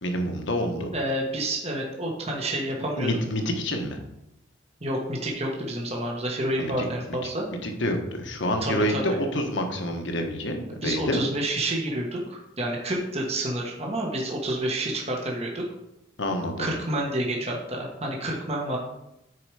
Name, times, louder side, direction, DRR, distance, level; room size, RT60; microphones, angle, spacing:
voice 1, 0.0-0.9 3.0-4.0 6.6-6.8 7.6-11.2 16.2-16.7, left 1 dB, 65° left, 4 dB, 1.3 m, -27 dB
voice 2, 0.9-3.2 4.8-7.5 8.6-9.0 10.7-15.6 16.6-18.8, right 1 dB, 30° right, -1 dB, 1.4 m, -29 dB
9.7 x 4.8 x 4.9 m, 0.86 s
head